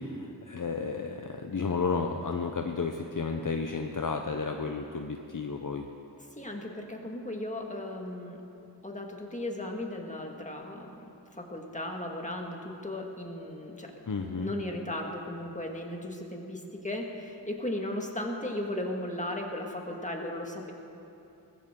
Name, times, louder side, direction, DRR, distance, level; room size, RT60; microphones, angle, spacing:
voice 1, 0.0-5.9 14.1-14.5, left 4 dB, 50° left, 4 dB, 0.7 m, -32 dB
voice 2, 6.4-8.4 8.8-11.0 11.4-13.9 14.2-20.7, left 1 dB, 15° left, 1 dB, 1.9 m, -36 dB
19.5 x 14.5 x 3.8 m, 2.8 s
wide cardioid pair, 60°, 42 cm